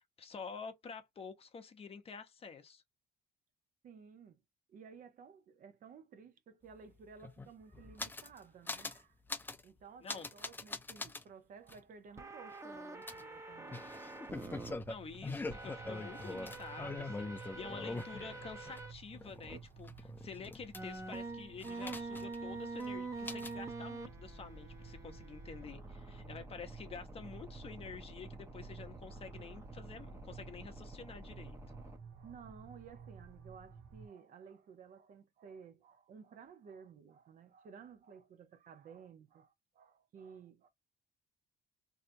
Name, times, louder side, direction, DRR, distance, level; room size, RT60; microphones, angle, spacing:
voice 1, 0.0-2.8 10.0-10.3 14.9-31.6, left 5 dB, 35° left, 0.7 m, -49 dB
voice 2, 3.8-4.4 4.7-9.2 9.6-13.9 29.1-29.6 31.3-31.4 31.7-40.7, right 6 dB, 55° right, 0.7 m, -55 dB
sound 1, 6.7-6.8 7.0-8.4 8.7-9.0 9.3-9.6 10.1-11.2 11.7-11.8 13.1-18.8 19.1-21.2 21.6-22.5 22.8-22.9 23.3-23.6, left 3 dB, 10° left, 0.4 m, -43 dB
sound 2, 12.2-14.7 15.5-18.9 19.5-19.6 20.7-32.0, right 3 dB, 15° right, 0.7 m, -47 dB
sound 3, 14.5-34.1, right 5 dB, 80° right, 1.3 m, -54 dB
3.2 x 2.8 x 2.6 m
cardioid pair, 110°, 17 cm